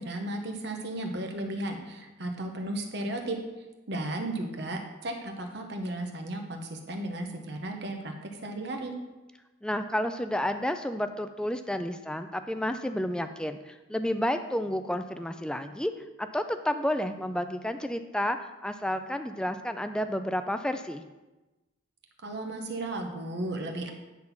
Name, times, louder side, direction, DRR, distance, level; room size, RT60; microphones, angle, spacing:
voice 1, 0.0-3.4 3.9-8.1 8.4-8.9 22.2-23.9, right 1 dB, 60° right, 3 dB, 1.0 m, -34 dB
voice 2, 9.6-15.9 16.2-21.0, left 1 dB, 5° left, 9 dB, 0.4 m, -31 dB
9.7 x 4.0 x 5.8 m, 1.1 s
head